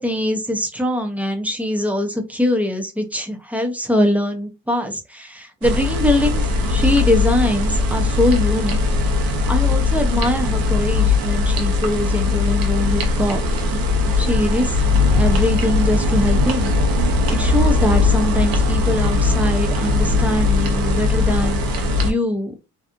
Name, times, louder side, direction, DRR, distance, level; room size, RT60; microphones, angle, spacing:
voice 1, 0.0-8.8 9.5-13.5 14.2-14.9 15.1-16.7 17.0-22.5, left 1 dB, 5° right, 4 dB, 0.7 m, -22 dB
sound 1, 5.6-22.1, left 3 dB, 70° right, 0.8 m, -19 dB
2.7 x 2.4 x 2.4 m, 0.26 s
cardioid pair, 95°, 36 cm